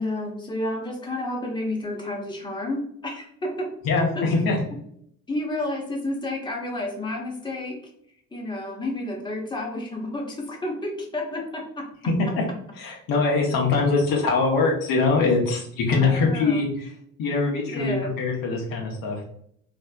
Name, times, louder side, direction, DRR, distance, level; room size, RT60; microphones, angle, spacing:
voice 1, 0.0-3.7 4.1-4.3 5.3-7.8 8.3-11.9 15.9-16.6 17.7-18.1, left 1 dB, 10° left, 0 dB, 0.9 m, -30 dB
voice 2, 3.8-4.6 12.3-12.4 12.8-16.9 17.2-19.2, left 3 dB, 60° left, 0 dB, 1.0 m, -23 dB
3.2 x 2.8 x 2.3 m, 0.67 s
hypercardioid pair, 50°, 38 cm